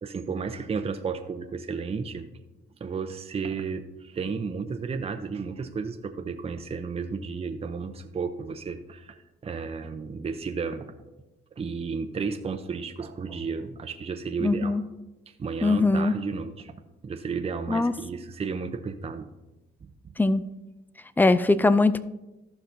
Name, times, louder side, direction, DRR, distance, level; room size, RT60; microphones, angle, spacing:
voice 1, 0.0-2.3 2.8-9.2 9.4-10.9 11.6-14.7 15.3-16.7 17.0-19.3, right 5 dB, 30° right, 6 dB, 0.7 m, -33 dB
voice 2, 14.4-14.8 15.6-16.1 17.7-17.9 20.2-20.4 21.2-22.1, left 2 dB, 10° left, 15 dB, 0.4 m, -21 dB
14.0 x 5.8 x 2.7 m, 1.0 s
cardioid pair, 90°, 20 cm